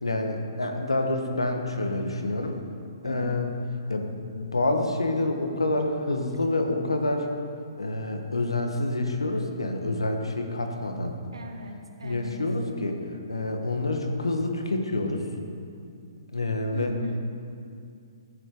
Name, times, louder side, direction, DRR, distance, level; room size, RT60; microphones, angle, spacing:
voice 1, 0.0-2.6 3.0-3.5 3.9-7.3 7.8-11.1 12.0-13.0 13.3-15.2 16.3-16.9, left 2 dB, 85° left, 4 dB, 1.4 m, -27 dB
voice 2, 3.0-3.4 11.3-12.5 16.1-16.2 16.7-17.2, right 2 dB, 75° right, 4 dB, 1.3 m, -39 dB
15.0 x 9.2 x 3.9 m, 2.4 s
figure-of-eight pair, 130°, 3 cm